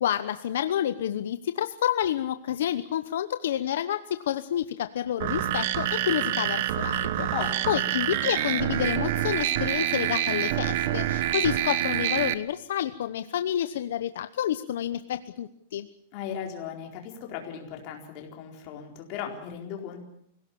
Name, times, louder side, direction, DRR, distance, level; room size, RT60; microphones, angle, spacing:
voice 1, 0.0-7.3 7.7-15.9, left 10 dB, 70° left, 11 dB, 1.0 m, -29 dB
sound 1, 5.2-12.3, right 12 dB, 45° right, 1.3 m, -27 dB
voice 2, 7.3-7.9 16.1-20.0, left 8 dB, 35° left, 2 dB, 4.3 m, -37 dB
25.0 x 17.5 x 8.6 m, 0.70 s
supercardioid pair, 175°, 0 cm